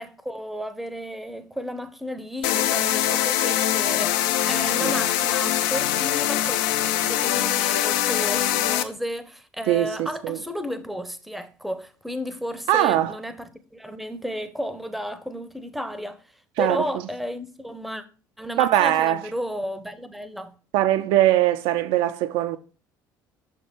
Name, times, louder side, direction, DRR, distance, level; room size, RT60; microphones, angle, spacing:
voice 1, 0.0-6.6 7.0-16.2 16.6-18.0 18.4-20.5, equal, ahead, 0.6 m, -33 dB
sound 1, 2.4-8.8, left 12 dB, 60° left, 0.5 m, -23 dB
voice 2, 9.7-10.4 12.7-13.2 16.6-16.8 18.6-19.2 20.7-22.6, right 13 dB, 55° right, 0.4 m, -21 dB
6.4 x 4.2 x 3.6 m
figure-of-eight pair, 60°, 11 cm